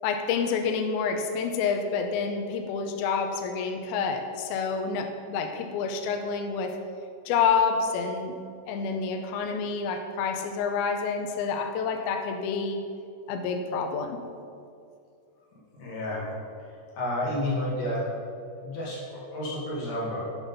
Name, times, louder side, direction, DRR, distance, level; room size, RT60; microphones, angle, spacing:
voice 1, 0.0-6.8 7.3-8.4 8.7-12.8 13.3-14.2, left 5 dB, 85° left, 5 dB, 2.2 m, -28 dB
voice 2, 15.8-16.5 17.0-18.1 18.6-20.2, left 1 dB, 55° left, -5 dB, 3.2 m, -30 dB
10.0 x 7.2 x 5.5 m, 2.4 s
omnidirectional pair, 5.1 m